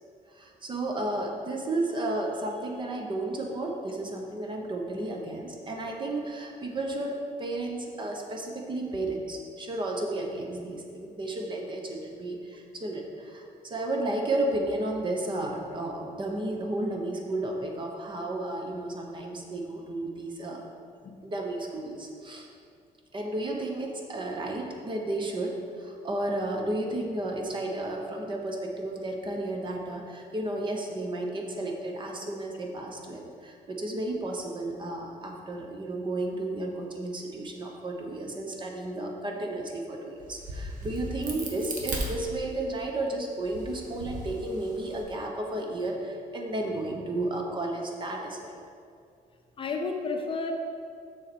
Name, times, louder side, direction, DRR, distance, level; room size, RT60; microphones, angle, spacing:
voice 1, 0.3-20.6 21.2-22.5 23.1-48.5, right 2 dB, 30° right, 1 dB, 0.9 m, -33 dB
Crack, 40.2-42.8 43.4-45.0, right 1 dB, 55° right, 1.2 m, -37 dB
voice 2, 49.6-50.5, left 4 dB, 35° left, 2 dB, 0.6 m, -31 dB
7.0 x 6.6 x 4.3 m, 2.3 s
cardioid pair, 160°, 16 cm